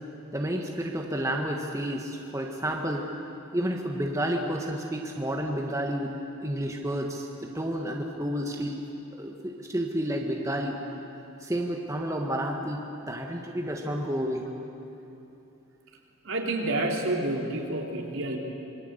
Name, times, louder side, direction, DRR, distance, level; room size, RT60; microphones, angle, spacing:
voice 1, 0.3-3.1 3.5-8.9 9.2-10.8 11.4-14.5, equal, 15° right, 1 dB, 1.6 m, -30 dB
voice 2, 16.2-18.4, right 2 dB, 70° right, 0 dB, 3.6 m, -29 dB
27.0 x 23.0 x 8.1 m, 2.9 s
head